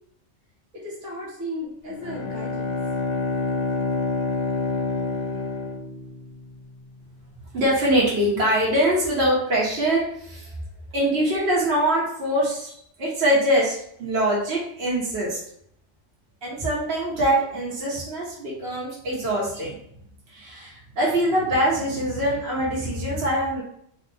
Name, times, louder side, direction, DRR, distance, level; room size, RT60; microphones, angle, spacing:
voice 1, 0.7-2.7, equal, 75° right, -6 dB, 1.7 m, -35 dB
Bowed string instrument, 1.9-6.6, left 3 dB, 60° left, 0.7 m, -27 dB
voice 2, 7.5-10.5 10.9-12.7 13.0-15.4 16.4-19.8 20.3-23.6, right 1 dB, 55° right, -6 dB, 1.6 m, -23 dB
4.0 x 3.1 x 3.5 m, 0.69 s
omnidirectional pair, 1.3 m